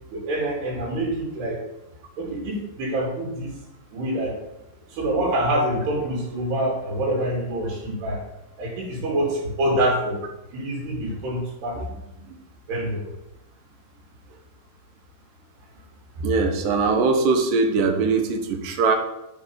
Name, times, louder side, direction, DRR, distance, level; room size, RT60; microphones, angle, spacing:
voice 1, 0.1-1.6 2.2-3.5 3.9-4.3 5.0-8.2 8.6-10.2 10.5-11.8 12.7-13.1, right 1 dB, 85° right, -3 dB, 5.0 m, -26 dB
voice 2, 16.2-19.0, right 4 dB, 70° right, 5 dB, 2.6 m, -21 dB
8.6 x 5.9 x 6.8 m, 0.92 s
omnidirectional pair, 4.6 m